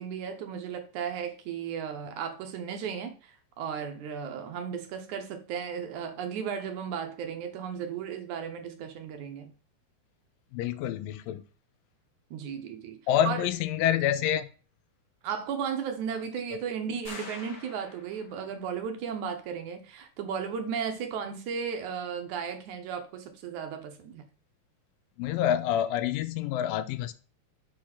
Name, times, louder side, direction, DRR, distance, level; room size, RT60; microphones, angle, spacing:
voice 1, 0.0-9.5 12.3-13.0 13.3-13.5 15.2-24.3, right 7 dB, 70° right, 2.0 m, -35 dB
voice 2, 10.5-11.4 13.1-14.5 25.2-27.1, left 10 dB, 90° left, 2.3 m, -27 dB
sound 1, 17.0-18.5, left 3 dB, 55° left, 1.1 m, -45 dB
6.6 x 4.6 x 5.7 m
omnidirectional pair, 4.0 m